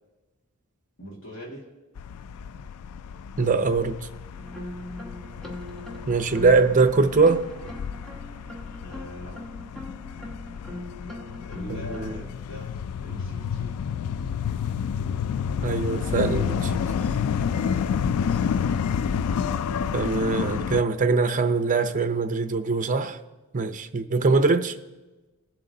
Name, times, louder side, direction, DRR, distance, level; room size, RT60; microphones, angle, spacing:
voice 1, 1.0-1.7 5.4-5.7 8.8-9.6 11.5-13.7, equal, 60° left, -3 dB, 2.2 m, -42 dB
sound 1, 2.0-20.8, left 7 dB, 85° left, 0.3 m, -30 dB
voice 2, 3.4-4.0 6.1-7.4 11.7-12.2 15.6-16.8 19.9-23.2 23.5-24.8, right 4 dB, 35° right, 9 dB, 0.6 m, -22 dB
sound 2, 4.3-12.2, left 1 dB, ahead, 1.1 m, -40 dB
20.5 x 7.6 x 2.8 m, 1.1 s
head